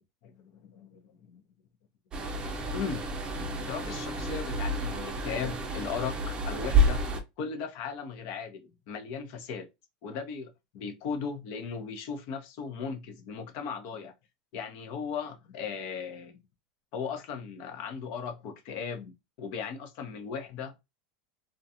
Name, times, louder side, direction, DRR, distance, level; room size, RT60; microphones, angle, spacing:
voice 1, 0.2-1.4 2.2-3.0 3.7-7.0 7.4-9.7 10.0-14.1 14.5-16.4 16.9-20.7, left 6 dB, 60° left, 0.7 m, -37 dB
sound 1, 2.1-7.2, right 1 dB, 25° right, 0.6 m, -29 dB
2.4 x 2.3 x 2.7 m
supercardioid pair, 120°, 4 cm